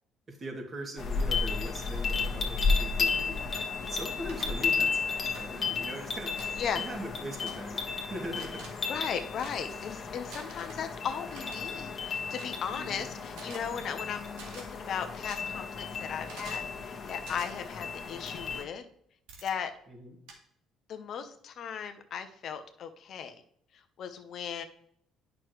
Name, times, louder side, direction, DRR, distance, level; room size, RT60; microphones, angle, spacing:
voice 1, 0.3-3.4 3.9-8.7 12.7-13.1 19.9-20.1, equal, 40° right, 0 dB, 2.6 m, -41 dB
sound 1, 1.0-18.6, left 4 dB, 45° left, 1.5 m, -33 dB
sound 2, 3.5-3.6 4.3-4.4 5.3-5.5 6.4-6.5 7.3-7.5 8.3-8.7 9.3-9.5 10.3-10.8 11.3-11.6 12.3-12.5 13.3-13.6 14.3-14.6 15.3-15.4 16.3-16.6 17.2-17.5 18.3-18.4 19.3-19.5 20.3-20.4, right 4 dB, 80° right, 1.9 m, -47 dB
voice 2, 8.9-14.3 14.5-18.8 19.4-19.7 20.9-23.3 23.7-24.6, left 7 dB, 60° left, 8 dB, 0.9 m, -37 dB
8.9 x 6.2 x 3.1 m, 0.68 s
supercardioid pair, 70°, 0 cm